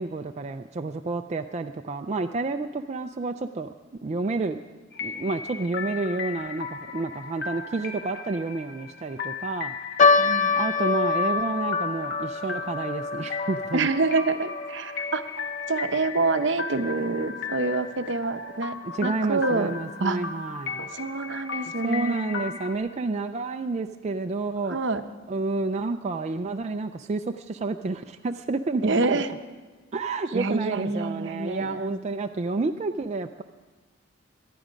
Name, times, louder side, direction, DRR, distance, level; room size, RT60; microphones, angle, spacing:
voice 1, 0.0-3.7 4.0-4.6 5.0-9.7 10.5-13.9 19.0-20.8 21.8-24.8 25.3-28.9 29.9-33.4, right 3 dB, 35° right, 5 dB, 0.4 m, -30 dB
sound 1, 4.9-22.8, left 5 dB, 55° left, 1.2 m, -36 dB
sound 2, 10.0-16.5 16.7-16.8 17.6-17.9 18.5-18.6 18.9-19.1, left 4 dB, 35° left, 0.6 m, -26 dB
voice 2, 10.2-10.6 13.7-15.3 15.7-19.7 20.0-20.2 20.8-22.2 24.7-25.0 28.8-29.3 30.3-31.9, right 3 dB, 60° right, 9 dB, 0.8 m, -27 dB
18.5 x 12.0 x 5.2 m, 1.3 s
head